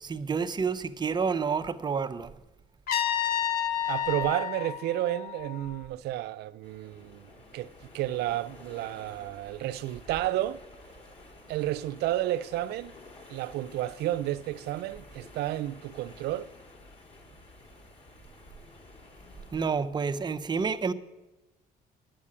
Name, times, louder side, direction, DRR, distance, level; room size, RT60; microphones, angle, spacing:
voice 1, 0.0-2.3 19.5-20.9, right 5 dB, 25° right, 0.6 m, -29 dB
Trumpet, 2.9-5.8, left 10 dB, 65° left, 1.0 m, -30 dB
voice 2, 3.8-10.6 11.5-13.0 13.3-16.5, right 14 dB, 75° right, 0.5 m, -31 dB
sound 1, 6.6-19.7, left 2 dB, 35° left, 2.6 m, -52 dB
9.8 x 7.5 x 8.7 m
cardioid pair, 110°, 17 cm